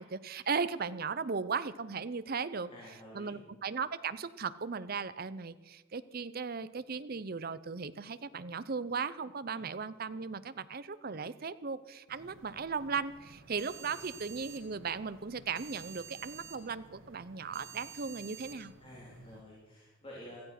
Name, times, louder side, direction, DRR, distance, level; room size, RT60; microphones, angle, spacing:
voice 1, 0.0-2.7 3.1-18.7, right 5 dB, 45° right, 14 dB, 0.7 m, -37 dB
voice 2, 2.7-3.4 9.5-9.7 18.8-20.4, equal, 25° left, -5 dB, 3.6 m, -50 dB
sound 1, 12.1-19.4, right 6 dB, 75° right, 1.9 m, -51 dB
17.0 x 13.5 x 5.9 m, 1.2 s
head